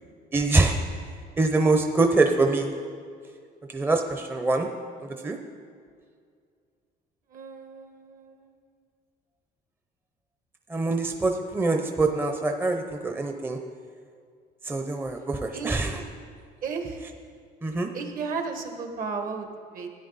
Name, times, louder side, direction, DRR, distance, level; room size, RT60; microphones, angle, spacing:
voice 1, 0.3-0.8 1.4-2.7 3.7-4.7 5.2-5.4 10.7-13.6 14.6-16.0 17.6-17.9, right 3 dB, 15° right, 4 dB, 0.6 m, -24 dB
voice 2, 7.3-8.5 15.5-15.8 16.6-17.0 17.9-19.9, right 5 dB, 55° right, 4 dB, 1.4 m, -34 dB
13.0 x 9.5 x 4.0 m, 2.2 s
cardioid pair, 110°, 17 cm